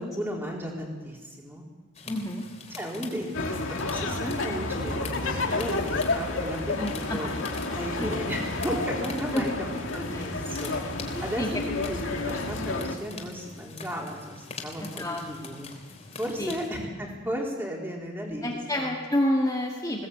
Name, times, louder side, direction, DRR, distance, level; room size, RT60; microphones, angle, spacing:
voice 1, 0.0-1.6 2.7-7.3 7.7-9.5 9.9-10.7 11.2-15.7 16.2-18.4 18.7-18.9, equal, 10° right, -2 dB, 4.2 m, -34 dB
sound 1, 1.9-16.7, left 4 dB, 35° left, 3.5 m, -44 dB
voice 2, 2.1-2.4 6.8-7.2 8.0-8.1 9.3-9.4 10.1-10.3 11.1-11.6 14.8-15.2 16.4-16.6 18.4-20.1, left 1 dB, 15° left, -2 dB, 2.0 m, -28 dB
sound 2, 3.3-13.0, left 2 dB, 75° left, 2.3 m, -30 dB
20.5 x 18.5 x 8.7 m, 1.4 s
head